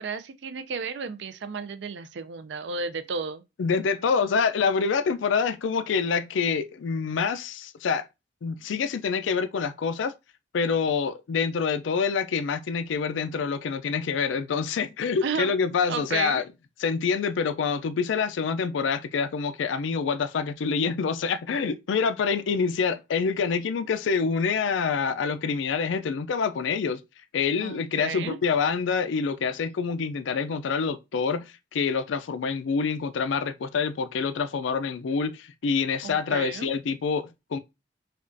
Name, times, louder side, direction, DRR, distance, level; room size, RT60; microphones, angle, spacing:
voice 1, 0.0-3.4 15.2-15.5 15.9-16.4 27.6-28.4 36.0-36.7, right 5 dB, 65° right, 0.4 m, -33 dB
voice 2, 3.6-8.1 8.4-10.1 10.5-16.4 16.8-27.0 27.3-37.6, left 5 dB, 85° left, 0.4 m, -26 dB
5.0 x 2.3 x 2.6 m
head